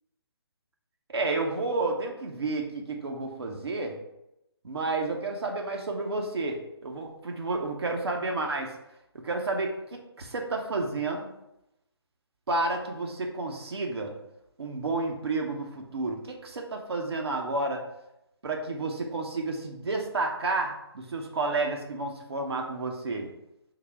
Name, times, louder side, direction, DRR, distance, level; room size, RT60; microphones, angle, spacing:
voice 1, 1.1-4.0 4.6-8.7 9.1-9.7 10.2-11.3 12.5-14.1 14.6-17.8 18.4-23.3, right 3 dB, 70° right, 1 dB, 0.8 m, -31 dB
3.9 x 2.8 x 4.5 m, 0.85 s
figure-of-eight pair, 145°, 14 cm